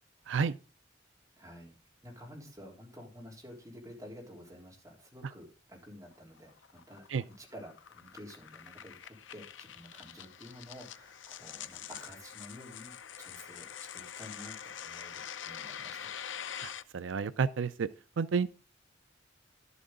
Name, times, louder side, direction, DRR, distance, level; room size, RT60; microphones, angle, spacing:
voice 1, 0.3-0.6 7.1-7.2 16.6-17.9 18.2-18.5, right 5 dB, 80° right, 0.4 m, -30 dB
voice 2, 1.4-1.7 2.0-7.1 7.4-16.1, equal, 15° right, 3.8 m, -50 dB
sound 1, 6.1-16.8, left 9 dB, 75° left, 0.6 m, -45 dB
11.5 x 8.3 x 3.8 m
head